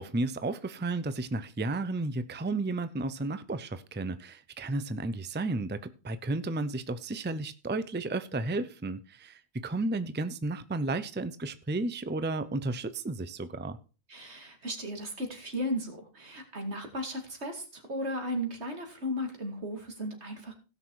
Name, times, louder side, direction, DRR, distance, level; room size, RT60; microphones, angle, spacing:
voice 1, 0.0-13.8, right 2 dB, 15° right, 0.5 m, -33 dB
voice 2, 14.1-20.5, equal, 80° right, 2.6 m, -35 dB
17.0 x 6.4 x 4.7 m
omnidirectional pair, 1.1 m